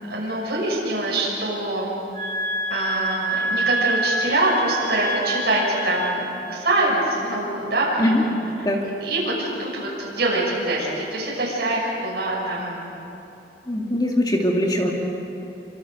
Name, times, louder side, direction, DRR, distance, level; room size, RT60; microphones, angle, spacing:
voice 1, 0.1-2.0 2.7-8.3 8.8-12.9, right 2 dB, 60° right, -5 dB, 6.5 m, -24 dB
sound 1, 2.1-6.4, right 1 dB, 40° right, 7.6 m, -27 dB
voice 2, 13.7-14.9, left 1 dB, 25° left, 0 dB, 2.3 m, -21 dB
26.0 x 26.0 x 6.7 m, 2.9 s
head